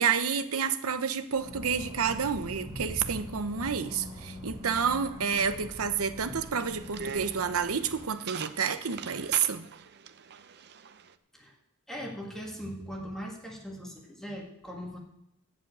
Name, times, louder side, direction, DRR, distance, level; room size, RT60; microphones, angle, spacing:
voice 1, 0.0-9.6, right 6 dB, 75° right, 11 dB, 0.8 m, -29 dB
sound 1, 1.3-8.1, equal, 15° right, 5.1 m, -43 dB
sound 2, 6.2-11.1, right 7 dB, 50° right, 0.6 m, -43 dB
voice 2, 11.9-15.0, equal, ahead, -2 dB, 1.8 m, -40 dB
13.0 x 5.2 x 8.5 m, 0.83 s
head